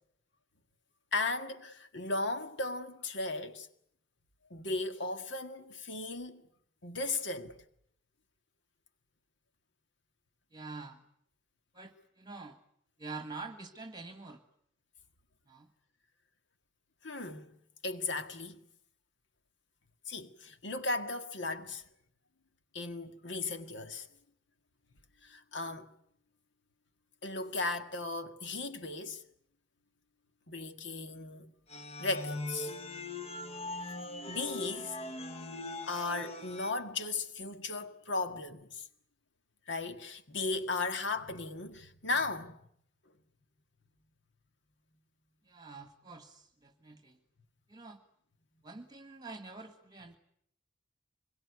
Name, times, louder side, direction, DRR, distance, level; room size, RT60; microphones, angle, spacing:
voice 1, 1.1-3.7 4.5-6.4 6.8-7.5 17.0-18.6 20.1-21.8 22.7-24.1 25.2-25.9 27.2-29.2 30.5-31.5 32.0-32.7 34.3-35.0 35.8-38.8 39.7-42.6, left 3 dB, 65° left, 1.9 m, -36 dB
voice 2, 10.5-11.0 11.7-12.6 13.0-14.4 15.5-15.7 45.4-47.2 47.7-48.0 48.6-50.2, right 3 dB, 20° right, 1.6 m, -46 dB
sound 1, 31.7-36.7, left 2 dB, 30° left, 1.2 m, -41 dB
26.0 x 22.5 x 9.4 m
head